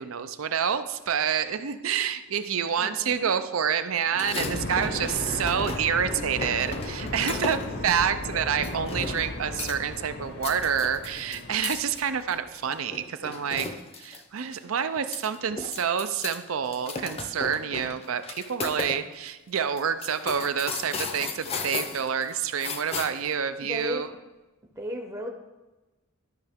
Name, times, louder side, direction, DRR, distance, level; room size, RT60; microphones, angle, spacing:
voice 1, 0.0-13.7 14.0-24.1, right 7 dB, 85° right, 11 dB, 0.5 m, -28 dB
voice 2, 2.8-3.3 23.6-24.1 24.8-25.3, equal, 15° right, 1 dB, 0.6 m, -35 dB
sound 1, 4.1-6.0 6.4-7.8 8.6-9.3 9.6-10.0 10.3-14.2 14.5-14.6 14.9-16.4 16.7-19.0 19.3-19.4 19.8-23.3, left 4 dB, 30° left, 0.6 m, -35 dB
sound 2, 4.4-12.4, left 2 dB, 55° left, 0.9 m, -35 dB
13.0 x 5.5 x 3.6 m, 1.1 s
head